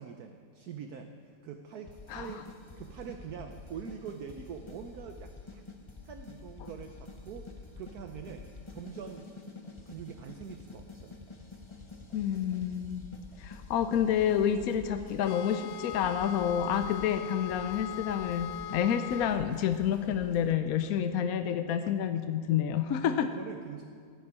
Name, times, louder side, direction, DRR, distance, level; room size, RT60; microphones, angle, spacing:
voice 1, 0.0-2.5 2.8-5.6 6.1-9.3 9.9-11.2 23.2-23.8, right 7 dB, 60° right, 5 dB, 1.2 m, -44 dB
sound 1, 1.9-20.5, left 3 dB, 25° left, 0.7 m, -48 dB
voice 2, 12.1-13.0 13.4-23.3, left 9 dB, 65° left, 9 dB, 0.9 m, -29 dB
sound 2, 15.2-19.4, left 12 dB, 85° left, 1.3 m, -40 dB
17.5 x 7.3 x 9.6 m, 2.1 s
omnidirectional pair, 2.0 m